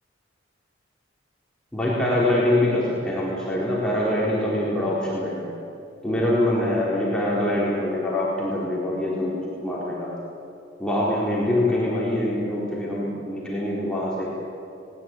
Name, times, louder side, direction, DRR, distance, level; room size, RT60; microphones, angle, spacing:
voice 1, 1.7-5.5 6.0-10.1 10.8-14.3, left 1 dB, 5° left, -7 dB, 4.2 m, -24 dB
20.0 x 20.0 x 9.3 m, 2.6 s
head